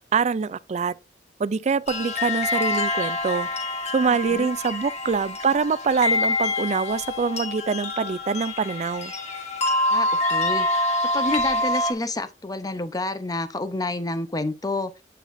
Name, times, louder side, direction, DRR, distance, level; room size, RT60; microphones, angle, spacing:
voice 1, 0.1-0.9 1.4-3.5 3.9-9.1, right 5 dB, 40° right, 0.4 m, -24 dB
sound 1, 1.9-11.9, left 2 dB, 40° left, 1.4 m, -26 dB
voice 2, 4.1-4.5 9.9-10.7 11.1-14.9, left 2 dB, 20° left, 0.7 m, -29 dB
9.2 x 5.7 x 2.6 m
head